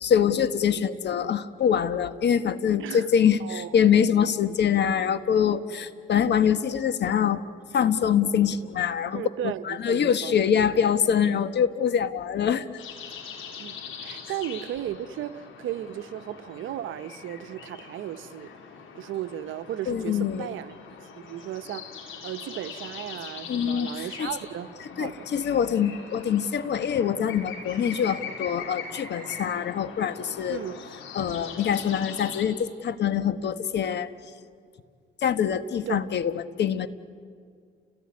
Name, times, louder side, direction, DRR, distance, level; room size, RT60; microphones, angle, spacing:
voice 1, 0.0-7.4 7.7-12.8 19.9-20.5 23.5-24.3 25.0-30.6 31.1-34.1 35.2-36.9, left 8 dB, 60° left, 12 dB, 1.3 m, -24 dB
voice 2, 3.4-3.7 9.1-10.3 13.6-18.5 18.9-20.7 21.2-25.3 30.5-30.8 35.9-36.0, right 12 dB, 80° right, 11 dB, 1.0 m, -35 dB
sound 1, 12.8-32.5, left 6 dB, 85° left, 4.1 m, -42 dB
30.0 x 18.0 x 9.7 m, 2.1 s
cardioid pair, 90°, 20 cm